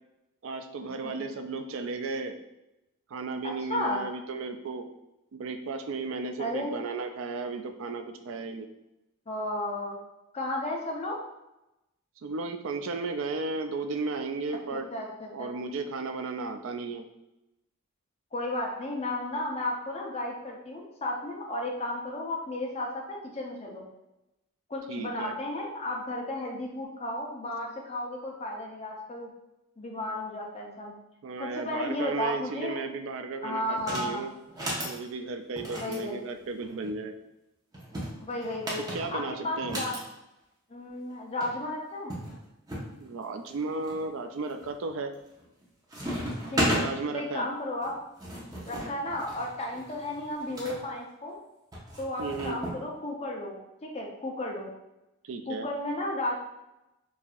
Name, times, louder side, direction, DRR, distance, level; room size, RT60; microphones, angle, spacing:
voice 1, 0.4-2.4 3.1-4.9 5.3-8.7 12.2-14.9 15.3-17.1 24.9-25.4 31.2-34.3 34.8-37.2 38.8-39.8 43.0-45.1 46.7-47.5 52.2-52.6 55.2-55.7, right 3 dB, 60° right, 7 dB, 0.4 m, -34 dB
voice 2, 3.4-4.0 6.4-6.7 9.3-10.0 10.3-11.2 14.7-15.5 18.3-23.9 24.7-29.3 29.8-30.9 31.4-32.8 33.4-34.3 35.7-36.2 38.2-40.0 40.7-42.1 46.5-46.8 47.1-48.0 48.7-51.3 52.0-53.6 53.8-54.7 55.5-56.4, left 1 dB, 30° left, -1 dB, 0.6 m, -33 dB
sound 1, 33.8-34.1 34.5-35.0 35.6-36.9 37.7-40.0 41.1-41.2 41.4-41.5 42.1-42.9 43.4-44.0 44.5-44.9 45.2-45.6 45.9-46.9 47.8-50.8 51.7-52.8, equal, 15° right, 0.8 m, -34 dB
4.7 x 2.7 x 2.4 m, 0.94 s
head